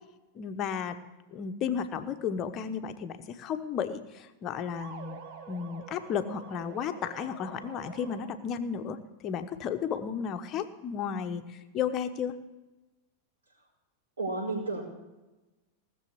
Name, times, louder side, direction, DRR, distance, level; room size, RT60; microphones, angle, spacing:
voice 1, 0.3-1.0 1.3-5.2 5.5-12.4, left 7 dB, 35° left, 8 dB, 1.0 m, -33 dB
sound 1, 4.8-8.7, right 5 dB, 45° right, 1.3 m, -47 dB
voice 2, 14.2-14.8, right 3 dB, 70° right, -3 dB, 5.3 m, -31 dB
18.5 x 7.0 x 7.0 m, 1.1 s
figure-of-eight pair, 90°, 0 cm